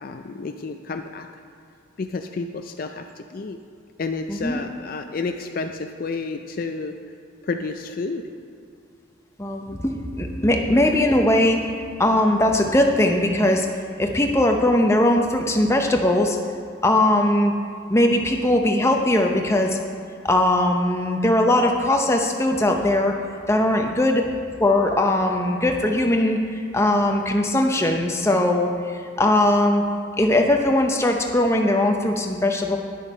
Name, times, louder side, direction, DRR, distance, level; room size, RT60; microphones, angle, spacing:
voice 1, 0.0-1.3 2.0-3.6 4.0-7.0 7.4-8.2 9.7-10.0, left 4 dB, 45° left, 6 dB, 0.4 m, -30 dB
voice 2, 4.3-4.6 9.4-11.7 12.0-13.7 14.0-16.4 16.8-17.5 17.9-19.8 20.2-23.1 23.5-24.2 24.6-26.4 26.7-29.8 30.2-32.8, left 1 dB, 15° left, 3 dB, 0.7 m, -20 dB
10.0 x 7.1 x 5.4 m, 2.4 s
head